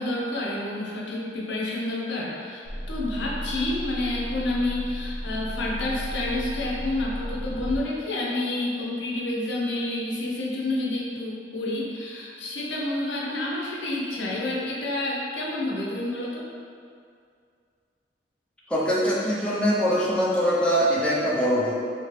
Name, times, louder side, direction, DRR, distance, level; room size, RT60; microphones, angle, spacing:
voice 1, 0.0-16.5, left 2 dB, 85° left, -4 dB, 0.6 m, -29 dB
sound 1, 2.6-7.8, equal, 65° right, 0.8 m, -34 dB
voice 2, 18.7-21.7, equal, 5° left, -7 dB, 0.4 m, -23 dB
3.0 x 2.8 x 3.0 m, 2.3 s
head